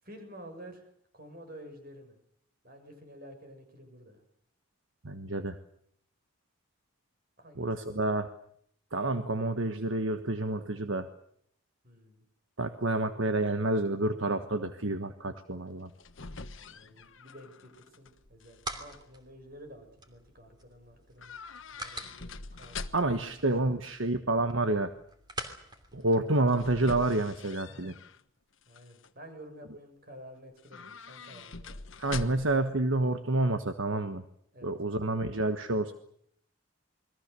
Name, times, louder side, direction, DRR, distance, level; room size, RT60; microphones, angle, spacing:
voice 1, 0.0-2.2 2.6-4.2 7.4-8.0 11.8-12.2 16.6-21.3 21.7-23.4 23.7-23.8 27.7-27.9 28.7-31.8 34.5-34.7, equal, 45° right, 6 dB, 7.0 m, -51 dB
voice 2, 5.0-5.6 7.6-8.3 8.9-11.1 12.6-15.9 22.9-24.9 25.9-27.9 32.0-34.2 34.6-35.9, right 2 dB, 70° right, 8 dB, 1.4 m, -29 dB
sound 1, 15.7-18.1 18.4-19.0 21.2-23.3 26.1-28.2 28.6-29.1 30.6-32.7 32.9-33.0, left 4 dB, 65° left, 1.3 m, -44 dB
sound 2, 18.1-27.0, right 1 dB, 20° right, 3.0 m, -46 dB
28.5 x 22.0 x 6.9 m, 0.68 s
head